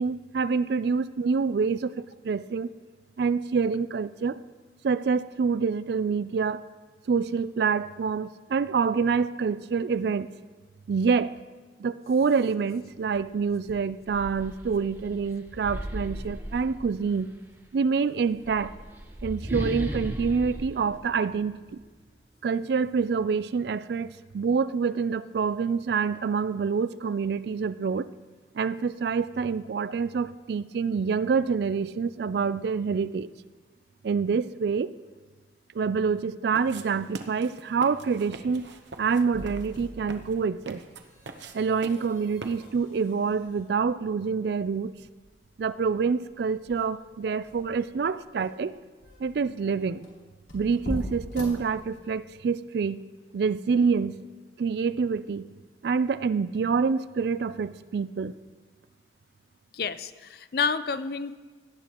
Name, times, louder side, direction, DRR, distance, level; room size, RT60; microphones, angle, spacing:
voice 1, 0.0-2.7 3.2-4.4 4.8-6.6 7.1-10.3 10.9-11.3 11.8-17.3 17.7-18.7 19.2-21.8 22.4-28.1 28.5-33.3 34.0-34.9 35.7-38.7 39.0-40.8 41.5-44.9 45.6-48.7 49.2-50.1 50.5-53.0 53.3-54.1 54.6-55.5 55.8-58.3, right 5 dB, 65° right, 16 dB, 0.3 m, -26 dB
sound 1, 13.1-13.3 13.7-17.3 18.2-21.9, equal, 10° right, 0.9 m, -37 dB
sound 2, 36.6-42.9, right 3 dB, 80° right, 0.9 m, -44 dB
sound 3, 38.3-52.3, left 1 dB, 75° left, 3.3 m, -43 dB
voice 2, 59.7-61.4, left 5 dB, 55° left, 13 dB, 0.5 m, -29 dB
17.5 x 11.0 x 3.0 m, 1.4 s
head